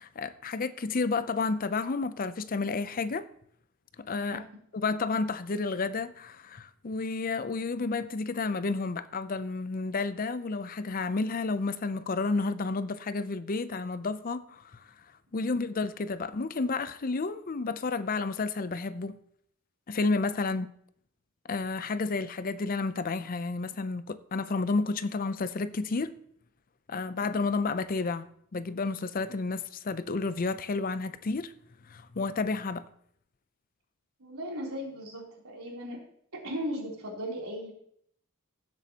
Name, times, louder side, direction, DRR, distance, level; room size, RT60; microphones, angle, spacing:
voice 1, 0.0-3.3 4.0-4.4 4.7-14.9 15.3-19.2 19.9-20.7 21.5-26.2 26.9-31.5 31.9-32.9, left 3 dB, 40° left, 0.5 m, -31 dB
voice 2, 34.2-36.0 36.3-37.7, equal, 90° right, 3.4 m, -37 dB
17.0 x 7.7 x 2.9 m
head